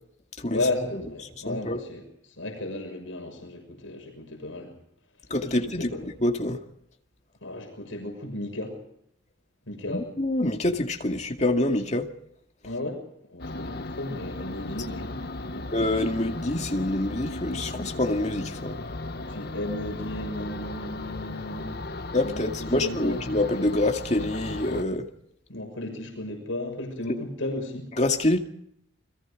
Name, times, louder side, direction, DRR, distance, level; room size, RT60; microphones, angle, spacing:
voice 1, 0.5-4.7 5.7-6.0 7.4-8.8 9.7-10.1 12.6-13.0 13.3-15.7 19.3-21.8 22.2-23.3 25.5-27.9, left 2 dB, 80° left, 6.6 m, -34 dB
voice 2, 1.3-1.8 5.3-6.6 9.9-12.1 15.7-18.8 22.1-25.1 28.0-28.4, left 1 dB, 35° left, 2.2 m, -26 dB
sound 1, 13.4-24.8, left 2 dB, 50° left, 1.0 m, -36 dB
29.5 x 22.0 x 5.2 m
head